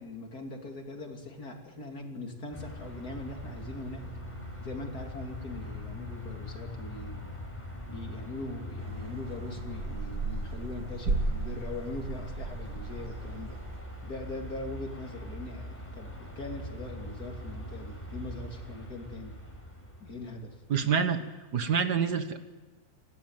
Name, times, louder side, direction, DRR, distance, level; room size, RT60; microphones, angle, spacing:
voice 1, 0.0-4.1 4.6-7.3 7.9-13.6 14.0-19.3 20.0-20.6, left 2 dB, 50° left, 2 dB, 3.4 m, -41 dB
sound 1, 2.5-20.9, left 1 dB, 5° left, 4.6 m, -42 dB
sound 2, 8.8-13.8, right 3 dB, 75° right, 3.4 m, -35 dB
voice 2, 20.7-21.2 21.5-22.4, right 6 dB, 55° right, 10 dB, 1.8 m, -26 dB
29.0 x 13.0 x 9.2 m, 1.3 s
omnidirectional pair, 2.2 m